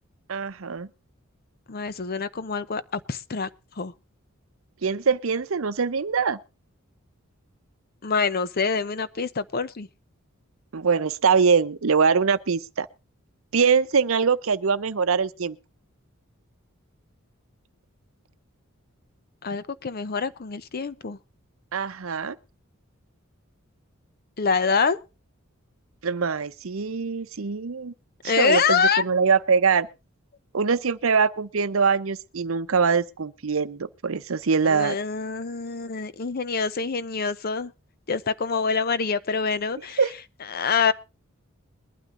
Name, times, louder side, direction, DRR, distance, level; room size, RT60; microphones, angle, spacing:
voice 1, 0.3-0.9 4.8-6.4 10.7-12.9 13.5-15.6 21.7-22.4 26.0-27.9 28.2-29.9 30.5-35.0 40.0-40.1, right 5 dB, 75° right, 0.7 m, -23 dB
voice 2, 1.7-3.5 3.8-3.9 8.0-9.9 19.4-21.2 24.4-25.0 28.2-29.0 34.6-37.7 38.1-40.0 40.5-40.9, left 5 dB, 45° left, 0.6 m, -25 dB
21.5 x 12.0 x 2.6 m
head